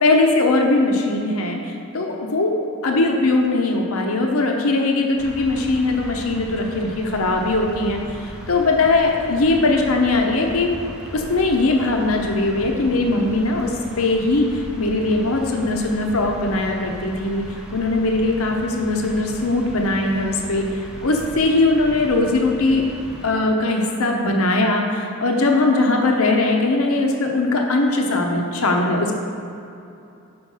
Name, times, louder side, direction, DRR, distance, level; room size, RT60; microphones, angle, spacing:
voice 1, 0.0-10.7 11.1-17.4 17.7-20.6 21.0-22.8 23.2-29.2, left 2 dB, 70° left, 2 dB, 0.8 m, -20 dB
sound 1, 5.2-23.3, equal, 5° right, 0.6 m, -37 dB
6.1 x 4.6 x 5.5 m, 2.7 s
head